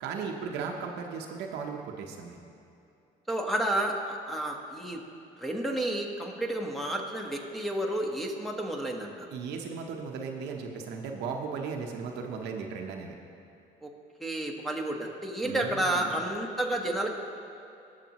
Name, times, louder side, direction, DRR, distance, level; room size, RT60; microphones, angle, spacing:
voice 1, 0.0-2.4 9.3-13.1 15.4-16.2, right 5 dB, 85° right, 2 dB, 1.0 m, -36 dB
voice 2, 3.3-5.0 5.4-9.3 13.8-13.9 14.2-17.1, right 1 dB, ahead, -1 dB, 1.3 m, -31 dB
18.0 x 6.8 x 3.0 m, 2.7 s
cardioid pair, 110°, 17 cm